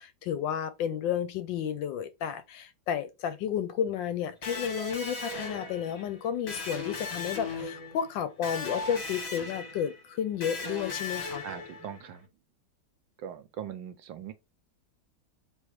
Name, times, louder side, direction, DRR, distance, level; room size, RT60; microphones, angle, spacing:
voice 1, 0.0-11.4, left 9 dB, 75° left, 1.2 m, -32 dB
Electric guitar, 4.4-12.1, left 3 dB, 40° left, 1.0 m, -38 dB
voice 2, 11.4-12.3 13.2-14.3, right 9 dB, 75° right, 1.3 m, -40 dB
3.6 x 3.1 x 4.6 m
omnidirectional pair, 2.2 m